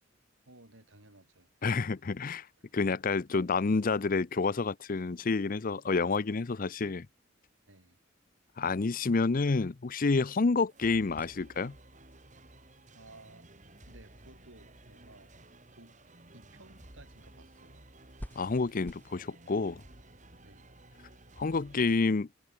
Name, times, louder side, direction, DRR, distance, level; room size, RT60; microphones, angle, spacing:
voice 1, 0.5-1.7 2.6-2.7 7.7-8.0 12.9-13.5 13.9-15.3 15.7-16.0 16.3-17.9 20.4-20.7, right 2 dB, 85° right, 6.4 m, -56 dB
voice 2, 1.6-2.5 2.7-7.1 8.6-11.7 18.4-19.8 21.4-22.3, left 4 dB, 45° left, 0.6 m, -29 dB
sound 1, 10.7-22.0, right 1 dB, 40° right, 4.8 m, -55 dB
sound 2, 11.1-19.1, equal, 10° left, 1.8 m, -54 dB
head